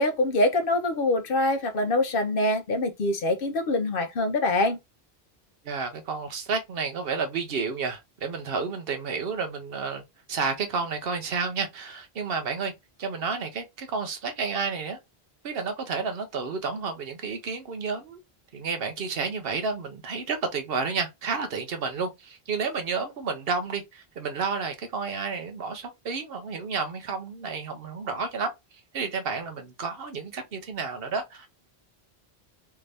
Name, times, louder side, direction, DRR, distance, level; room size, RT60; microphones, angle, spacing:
voice 1, 0.0-4.8, left 2 dB, 60° left, 0.9 m, -24 dB
voice 2, 5.6-10.0 10.3-12.7 13.0-15.0 15.4-18.2 18.5-28.5 28.9-31.5, right 5 dB, 65° right, 1.0 m, -31 dB
3.5 x 2.7 x 3.3 m
omnidirectional pair, 1.1 m